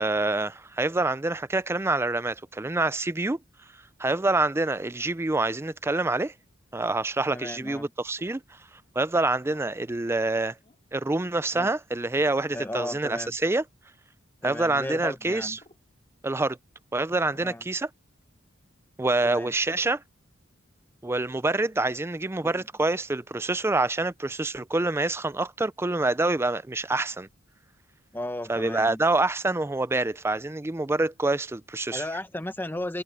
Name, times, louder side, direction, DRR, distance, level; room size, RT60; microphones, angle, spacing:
voice 1, 0.0-3.4 4.0-6.3 6.7-8.4 9.0-10.5 10.9-13.6 14.4-15.6 16.2-16.6 16.9-17.9 19.0-20.0 21.0-27.3 28.5-32.0, right 2 dB, 10° right, 0.4 m, -26 dB
sound 1, 4.9-5.3 6.7-7.1 8.2-8.5 9.5-9.8 10.6-10.8 11.5-11.7 12.8-13.0 13.4-13.6 14.8-15.0 15.6-15.9 17.3-17.6, left 2 dB, 30° left, 4.1 m, -59 dB
voice 2, 7.3-7.9 11.5-11.7 12.5-13.4 14.4-15.6 17.4-17.6 19.2-19.5 22.4-22.7 28.1-29.0 31.9-33.0, left 1 dB, 10° left, 1.0 m, -35 dB
head